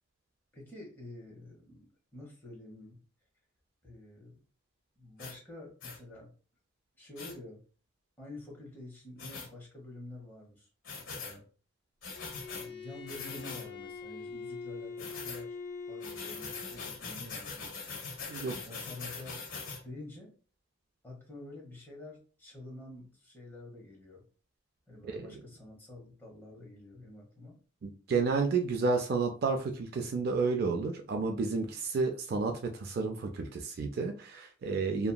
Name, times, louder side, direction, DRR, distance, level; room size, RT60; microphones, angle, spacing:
voice 1, 0.5-3.0 3.8-4.4 5.0-6.3 7.0-7.6 8.2-10.7 10.9-11.4 12.5-15.6 15.9-17.7 18.4-19.5 19.8-20.3 21.0-24.2 24.9-27.6, left 2 dB, 10° left, -3 dB, 1.0 m, -48 dB
sound 1, 5.2-5.4 5.8-6.0 7.2-7.3 9.2-9.5 10.8-11.4 12.0-12.7 13.1-13.7 15.0-15.4 16.0-19.8, left 4 dB, 75° left, 0.9 m, -42 dB
Bowed string instrument, 12.1-17.0, left 5 dB, 55° left, 0.6 m, -44 dB
voice 2, 27.8-35.1, right 4 dB, 45° right, 4 dB, 0.3 m, -31 dB
2.8 x 2.4 x 2.2 m, 0.38 s
head